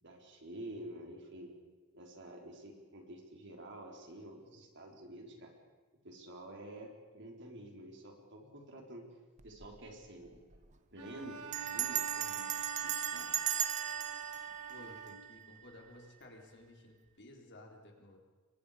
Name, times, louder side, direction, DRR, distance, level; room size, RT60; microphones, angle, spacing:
voice 1, 0.0-1.5 1.9-5.5 6.0-9.1 9.4-10.4 10.9-13.3, right 1 dB, 55° right, 1 dB, 4.2 m, -49 dB
Bell, 9.4-9.8 10.0-10.1 10.4-10.7 11.5-15.6, right 9 dB, 35° right, 1.0 m, -37 dB
Bowed string instrument, 11.0-15.6, right 6 dB, 85° right, 1.9 m, -44 dB
voice 2, 14.7-18.2, left 1 dB, 55° left, 1 dB, 4.1 m, -55 dB
28.5 x 23.0 x 5.1 m, 1.4 s
head